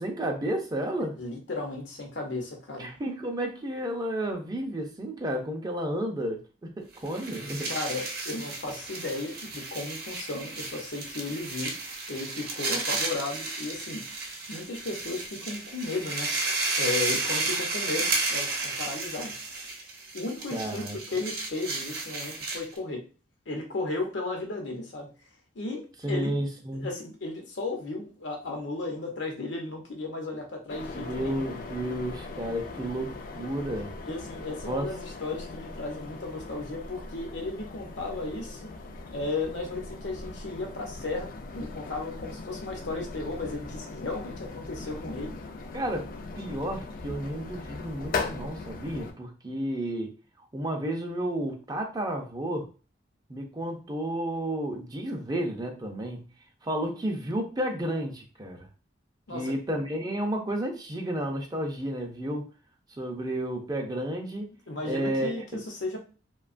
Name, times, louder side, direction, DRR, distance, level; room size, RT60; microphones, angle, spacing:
voice 1, 0.0-1.1 2.8-7.7 20.5-21.0 26.0-26.9 30.9-33.9 34.6-34.9 45.7-46.1 46.4-50.2 50.5-52.7 53.3-56.2 56.6-58.7 59.3-62.5 63.0-64.5 64.8-65.6, right 1 dB, 20° right, 2 dB, 0.5 m, -32 dB
voice 2, 1.2-2.9 7.7-11.8 12.1-14.0 14.5-16.3 16.8-19.4 20.1-23.0 23.5-25.1 25.6-25.8 26.1-26.3 26.7-31.6 34.1-38.7 39.1-45.3 59.3-59.5 64.7-66.0, left 3 dB, 80° left, 2 dB, 0.8 m, -35 dB
sound 1, 7.0-22.8, right 3 dB, 60° right, 0.7 m, -33 dB
sound 2, 30.7-49.1, left 3 dB, 50° left, 0.3 m, -39 dB
2.8 x 2.2 x 2.4 m, 0.35 s
head